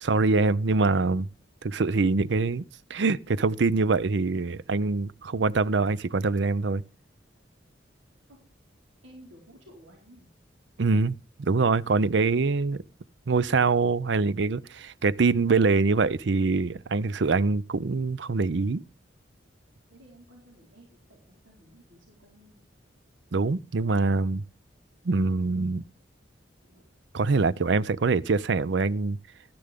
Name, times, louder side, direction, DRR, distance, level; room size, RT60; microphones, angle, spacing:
voice 1, 0.0-1.3 1.6-2.6 2.9-6.8 10.8-12.8 13.3-18.8 23.3-24.4 25.0-25.8 27.1-29.2, right 3 dB, 70° right, 0.5 m, -24 dB
voice 2, 9.0-10.3 19.9-22.7 26.7-26.8, equal, 90° right, 4.3 m, -54 dB
13.5 x 10.5 x 3.5 m
head